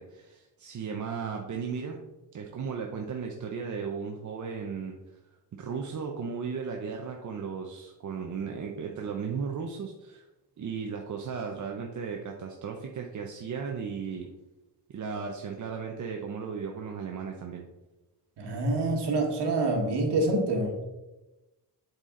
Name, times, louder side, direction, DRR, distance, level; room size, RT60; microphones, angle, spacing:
voice 1, 0.0-2.0 2.3-5.0 5.5-10.3 10.6-14.3 14.9-17.6, right 6 dB, 45° right, 2 dB, 0.7 m, -35 dB
voice 2, 18.4-20.9, right 2 dB, 80° right, 2 dB, 1.6 m, -27 dB
7.9 x 4.3 x 3.7 m, 1.0 s
cardioid pair, 125°, 40 cm